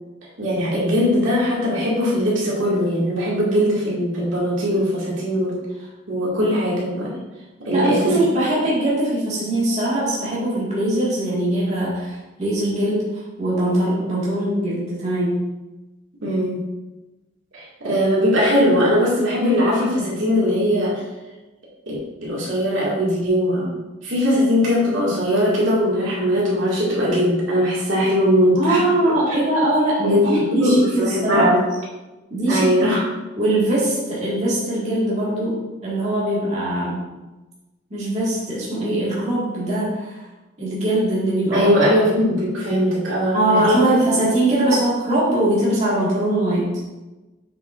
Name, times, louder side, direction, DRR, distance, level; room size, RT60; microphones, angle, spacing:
voice 1, 0.4-5.6 6.1-7.1 7.6-8.0 16.2-16.6 17.5-21.0 21.9-22.0 22.2-23.7 24.0-28.8 29.3-29.4 30.0-31.6 32.5-33.0 41.5-43.8, equal, 70° right, -6 dB, 2.2 m, -20 dB
voice 2, 7.7-15.4 28.6-31.5 32.3-32.7 33.4-37.0 37.9-40.3 40.6-41.7 43.3-46.7, right 1 dB, 35° right, -8 dB, 1.9 m, -21 dB
7.1 x 6.9 x 2.6 m, 1.1 s
head